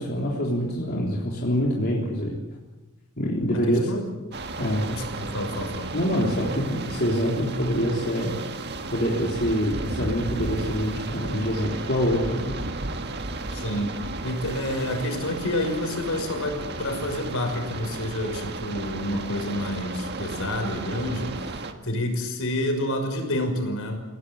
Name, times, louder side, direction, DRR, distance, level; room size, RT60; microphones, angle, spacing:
voice 1, 0.0-2.4 3.2-3.9 4.6-4.9 5.9-8.4 8.9-12.6, equal, 45° left, -3 dB, 3.7 m, -25 dB
voice 2, 3.5-4.0 4.9-6.0 13.5-14.0 14.2-21.4 21.8-24.0, left 1 dB, 65° left, 5 dB, 5.9 m, -29 dB
sound 1, 4.3-21.7, right 2 dB, 50° right, 1.8 m, -34 dB
28.5 x 17.5 x 8.4 m, 1.1 s
head